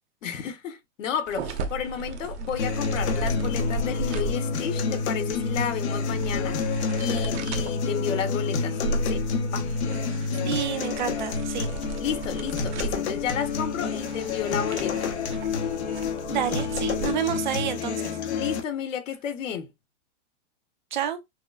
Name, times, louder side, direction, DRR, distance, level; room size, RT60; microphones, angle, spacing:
voice 1, 0.2-8.8 9.1-9.2 9.5-9.7 12.0-15.2 18.3-19.7, left 8 dB, 85° left, 1.2 m, -32 dB
sound 1, 1.3-17.1, right 2 dB, 60° right, 1.0 m, -36 dB
sound 2, 2.6-18.6, left 4 dB, 60° left, 1.2 m, -28 dB
voice 2, 10.4-11.7 16.3-18.2 20.9-21.2, right 9 dB, 40° right, 0.6 m, -29 dB
6.1 x 2.1 x 2.4 m
supercardioid pair, 180°, 37 cm